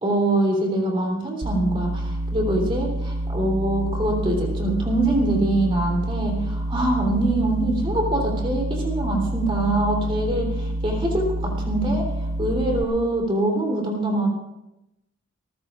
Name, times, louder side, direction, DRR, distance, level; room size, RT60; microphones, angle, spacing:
voice 1, 0.0-12.1 12.4-14.3, right 1 dB, 25° right, -1 dB, 3.4 m, -24 dB
sound 1, 1.4-12.8, right 1 dB, 85° right, 1.2 m, -28 dB
26.5 x 15.0 x 2.5 m, 0.90 s
head